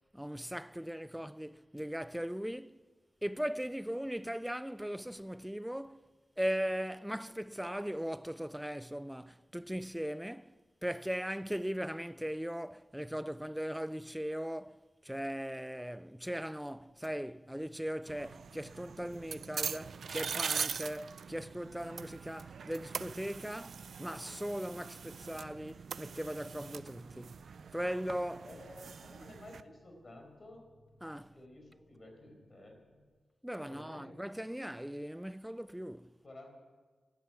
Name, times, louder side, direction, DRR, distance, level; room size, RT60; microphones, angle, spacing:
voice 1, 0.1-2.8 3.2-6.0 6.4-27.4 27.7-28.5 31.0-31.3 33.4-36.2, equal, 5° right, 0.4 m, -39 dB
sound 1, 16.6-33.1, left 1 dB, 60° left, 3.3 m, -67 dB
sound 2, 18.1-29.6, right 6 dB, 80° right, 0.4 m, -42 dB
voice 2, 28.4-30.6 31.3-32.7 33.6-34.1 36.2-36.5, left 1 dB, 45° left, 5.0 m, -52 dB
12.5 x 12.0 x 9.5 m
cardioid pair, 55°, 0 cm